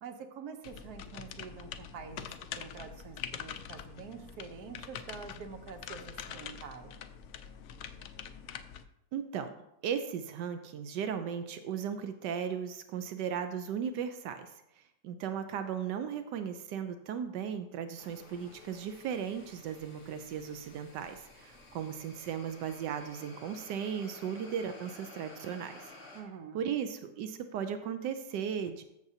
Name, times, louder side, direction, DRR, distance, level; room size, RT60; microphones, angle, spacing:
voice 1, 0.0-2.3 2.6-6.9 26.1-26.6, right 6 dB, 70° right, 6 dB, 1.3 m, -46 dB
sound 1, 0.6-8.8, left 8 dB, 85° left, 0.6 m, -44 dB
voice 2, 9.1-9.5 9.8-14.5 15.0-25.9 26.5-28.8, right 8 dB, 85° right, 8 dB, 1.3 m, -36 dB
sound 2, 18.0-26.2, left 2 dB, 50° left, 2.1 m, -53 dB
14.0 x 6.7 x 2.7 m, 0.85 s
omnidirectional pair, 1.8 m